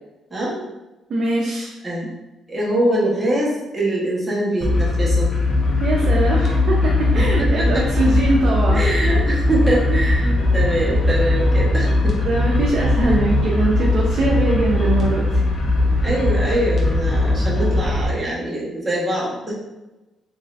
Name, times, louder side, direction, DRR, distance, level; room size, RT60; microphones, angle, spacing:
voice 1, 1.1-1.7 5.8-8.8 12.2-15.4, right 2 dB, 55° right, -3 dB, 0.6 m, -22 dB
voice 2, 2.5-5.3 7.2-7.8 8.7-12.3 13.0-13.2 16.0-19.6, right 1 dB, 15° right, -6 dB, 1.2 m, -23 dB
sound 1, 4.6-18.1, left 2 dB, 40° left, 1.0 m, -19 dB
3.7 x 3.2 x 2.6 m, 1.1 s
cardioid pair, 90°, 0 cm